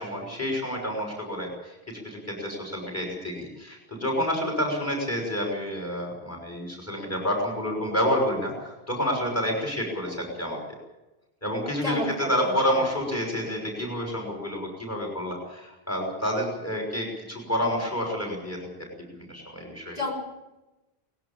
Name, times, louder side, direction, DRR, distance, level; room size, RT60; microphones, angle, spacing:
voice 1, 0.0-1.8 2.0-10.6 11.4-20.0, equal, 15° left, 0 dB, 5.9 m, -29 dB
voice 2, 11.8-12.9 20.0-20.1, left 1 dB, 40° left, -1 dB, 6.2 m, -31 dB
20.0 x 16.5 x 8.8 m, 1.0 s
omnidirectional pair, 1.1 m